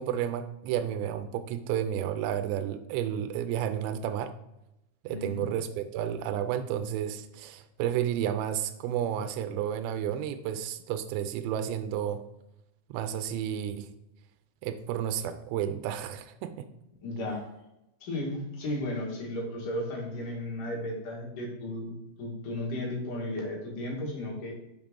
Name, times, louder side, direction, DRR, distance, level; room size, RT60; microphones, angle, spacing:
voice 1, 0.0-4.4 5.0-12.2 12.9-13.9 14.6-16.7, right 10 dB, 85° right, 8 dB, 2.7 m, -31 dB
voice 2, 5.1-5.5 17.0-17.5 18.0-24.5, left 1 dB, 55° left, -2 dB, 2.7 m, -34 dB
7.1 x 5.3 x 3.7 m, 0.90 s
omnidirectional pair, 5.0 m